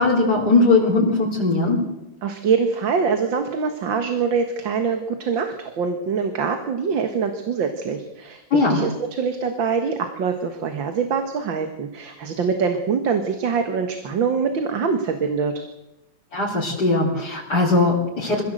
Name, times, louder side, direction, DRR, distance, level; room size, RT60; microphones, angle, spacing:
voice 1, 0.0-1.8 8.5-8.8 16.3-18.4, left 3 dB, 60° left, -5 dB, 4.2 m, -19 dB
voice 2, 2.2-15.5, right 5 dB, 90° right, 6 dB, 2.3 m, -24 dB
25.0 x 16.5 x 7.9 m, 0.94 s
omnidirectional pair, 2.0 m